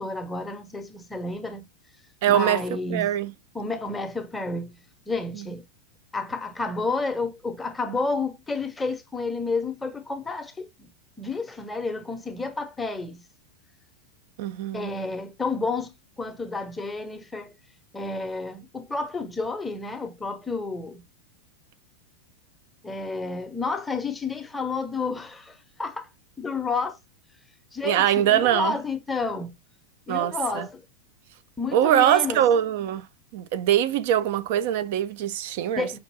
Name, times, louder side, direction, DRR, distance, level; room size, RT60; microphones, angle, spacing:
voice 1, 0.0-1.6 2.3-3.1 3.5-4.8 5.1-5.6 6.1-10.9 11.2-13.2 14.7-17.5 17.9-21.0 22.8-26.1 26.4-27.0 27.7-29.5 30.1-30.8 31.6-32.4 35.7-36.0, left 3 dB, 10° left, 0.6 m, -30 dB
voice 2, 2.2-2.6 2.9-3.3 5.3-5.5 14.4-15.0 27.8-28.8 30.1-30.7 31.7-33.1 33.3-36.0, right 11 dB, 50° right, 0.4 m, -23 dB
5.3 x 2.6 x 2.7 m
figure-of-eight pair, 90°, 0 cm